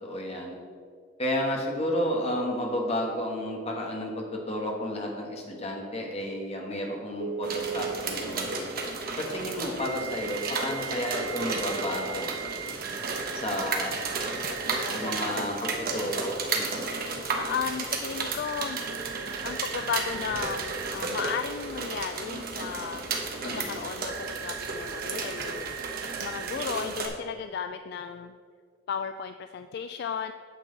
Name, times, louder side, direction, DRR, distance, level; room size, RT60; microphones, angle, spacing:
voice 1, 0.0-0.6 1.2-8.7 9.1-12.3 13.3-14.0 14.9-17.0 23.4-23.8, left 1 dB, 30° left, 0 dB, 1.4 m, -32 dB
Telephone, 7.2-7.9 9.8-15.3 18.4-21.0 24.1-26.6, right 9 dB, 90° right, 0.4 m, -39 dB
sound 1, 7.4-27.1, right 3 dB, 50° right, 1.2 m, -33 dB
voice 2, 14.4-15.4 17.3-18.8 19.4-23.0 23.4-25.7 26.2-28.3 28.9-30.3, left 7 dB, 55° left, 9 dB, 0.3 m, -35 dB
9.0 x 7.6 x 4.0 m, 2.2 s
head